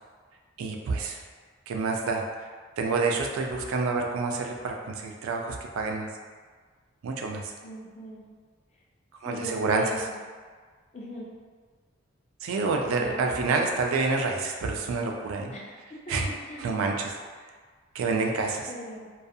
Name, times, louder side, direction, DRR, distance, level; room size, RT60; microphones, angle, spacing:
voice 1, 0.6-1.2 1.7-2.5 2.8-6.1 7.0-7.5 9.2-10.1 12.4-15.5 16.1-17.2 17.9-18.7, right 3 dB, 85° right, 2 dB, 0.3 m, -28 dB
voice 2, 7.6-8.2 9.3-10.1 10.9-11.2 12.9-13.4 15.5-15.7 16.1-16.2 16.5-16.7 18.7-19.1, left 1 dB, 30° left, -4 dB, 0.4 m, -39 dB
2.4 x 2.3 x 2.6 m, 1.6 s
head